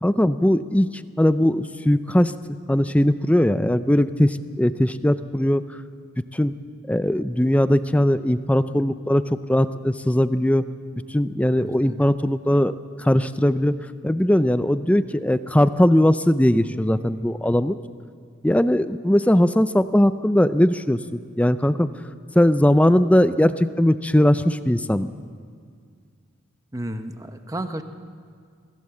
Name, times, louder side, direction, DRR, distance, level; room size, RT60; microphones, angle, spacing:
voice 1, 0.0-2.3 2.7-5.6 6.3-6.5 6.9-10.6 11.1-13.8 14.0-17.8 18.4-21.9 22.3-25.1, left 1 dB, 5° left, 12 dB, 0.5 m, -19 dB
voice 2, 11.5-12.0 26.7-27.8, right 1 dB, 15° right, 8 dB, 0.9 m, -32 dB
22.0 x 15.5 x 7.7 m, 2.1 s
head